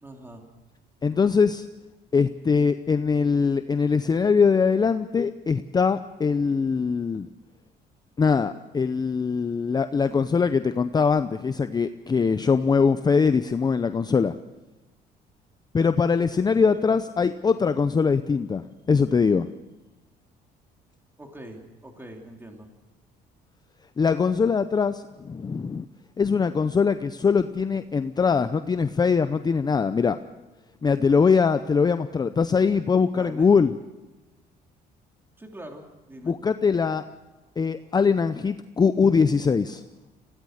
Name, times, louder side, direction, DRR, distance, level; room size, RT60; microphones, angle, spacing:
voice 1, 0.0-0.4 21.2-22.7 33.1-33.6 35.4-36.4, right 1 dB, 15° right, 2 dB, 3.0 m, -43 dB
voice 2, 1.0-1.7 2.1-7.3 8.2-14.3 15.7-19.5 24.0-25.9 26.2-30.2 30.8-33.7 36.3-37.0 37.6-39.8, left 5 dB, 25° left, 11 dB, 0.6 m, -22 dB
23.5 x 17.0 x 6.5 m, 1.1 s
cardioid pair, 110°, 17 cm